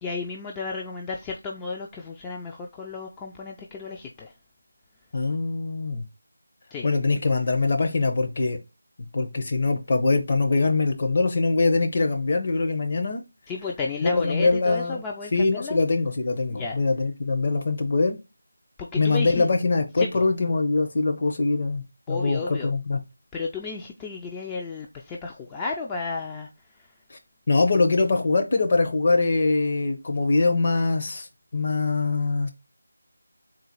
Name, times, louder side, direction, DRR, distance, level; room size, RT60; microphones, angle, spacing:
voice 1, 0.0-4.3 6.7-6.9 13.5-15.8 16.5-16.8 18.8-19.5 20.0-20.3 22.1-22.7 23.3-26.5, left 4 dB, 10° left, 0.3 m, -33 dB
voice 2, 5.1-6.1 6.8-8.6 9.1-13.2 14.0-15.0 15.3-18.2 19.0-23.0 27.5-31.3 31.5-32.5, left 3 dB, 40° left, 0.8 m, -23 dB
3.9 x 2.4 x 4.5 m
figure-of-eight pair, 165°, 0 cm